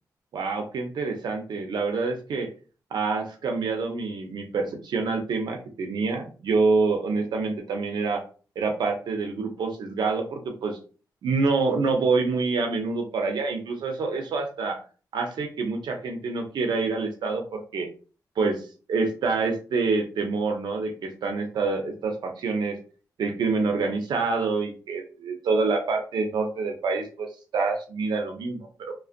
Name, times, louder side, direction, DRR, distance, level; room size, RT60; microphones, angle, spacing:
voice 1, 0.3-2.5 2.9-8.2 8.6-10.8 11.2-14.8 15.1-17.9 18.4-18.6 18.9-22.8 23.2-28.9, right 4 dB, 80° right, 4 dB, 0.4 m, -27 dB
2.5 x 2.1 x 2.4 m, 0.37 s
cardioid pair, 80°, 7 cm